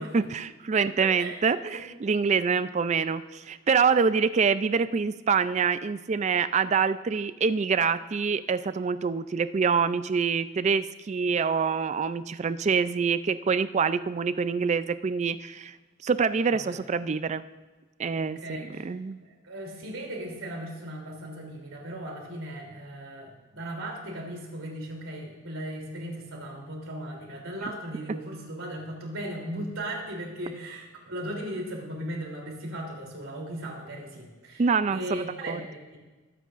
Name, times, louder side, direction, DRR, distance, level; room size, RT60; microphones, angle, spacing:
voice 1, 0.1-15.8 16.0-17.4 18.0-19.2 27.6-27.7 34.6-35.6, right 5 dB, 35° right, 13 dB, 0.3 m, -26 dB
voice 2, 1.0-1.4 1.7-1.8 16.5-16.8 18.2-18.9 19.2-34.6 34.9-36.0, right 1 dB, 75° right, 0 dB, 3.2 m, -37 dB
21.0 x 9.3 x 2.5 m, 1.2 s
head